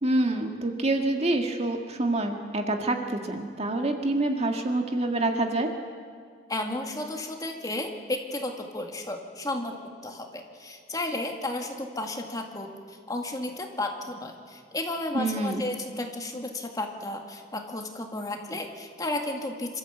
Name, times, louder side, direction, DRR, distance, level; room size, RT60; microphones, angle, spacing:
voice 1, 0.0-5.7 15.1-15.6, right 2 dB, 40° right, 4 dB, 1.8 m, -27 dB
voice 2, 6.5-9.8 10.0-19.8, left 2 dB, 20° left, 3 dB, 2.1 m, -33 dB
26.5 x 13.5 x 8.2 m, 2.1 s
head